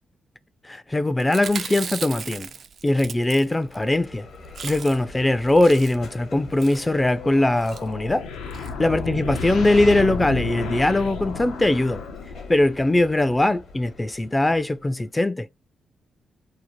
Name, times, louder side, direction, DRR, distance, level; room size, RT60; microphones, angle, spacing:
voice 1, 0.6-2.5 2.8-4.3 4.6-8.3 8.8-12.0 12.5-15.5, left 1 dB, 20° left, 0.3 m, -21 dB
Chewing mastication, 1.2-3.8 4.1-4.2 4.4-5.1 5.5-6.1 6.6-6.9 7.5-7.8 8.5-8.7 9.1-9.2 9.3-9.4, right 6 dB, 60° right, 0.3 m, -36 dB
Bell, 3.4-15.2, left 3 dB, 70° left, 1.0 m, -43 dB
sound 1, 7.2-12.6, left 5 dB, 85° left, 0.5 m, -32 dB
2.7 x 2.1 x 2.9 m
supercardioid pair, 50°, 0 cm